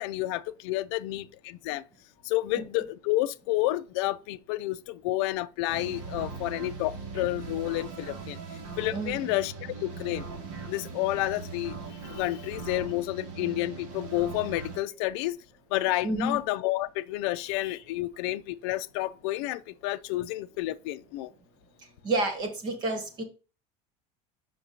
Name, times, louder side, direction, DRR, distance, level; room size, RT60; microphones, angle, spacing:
voice 1, 0.0-1.8 2.2-8.4 8.8-10.3 10.7-15.4 15.7-21.3, left 16 dB, 75° left, 0.5 m, -30 dB
sound 1, 5.7-14.8, right 4 dB, 55° right, 2.2 m, -40 dB
voice 2, 16.0-16.4 22.0-23.2, right 2 dB, 30° right, 1.6 m, -29 dB
7.2 x 5.8 x 2.8 m
cardioid pair, 170°, 14 cm